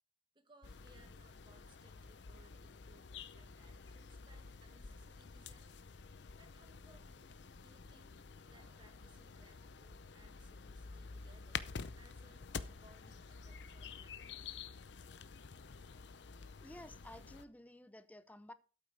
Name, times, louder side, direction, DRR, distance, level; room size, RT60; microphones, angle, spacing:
voice 1, 0.3-5.8 6.4-7.3 7.6-8.2 8.5-14.6, right 2 dB, 25° right, 1.5 m, -67 dB
sound 1, 0.6-17.4, left 5 dB, 85° left, 0.7 m, -50 dB
sound 2, 8.5-11.2, right 2 dB, 50° right, 5.0 m, -75 dB
voice 2, 16.6-18.5, left 1 dB, 10° left, 0.6 m, -53 dB
12.5 x 8.4 x 4.7 m
head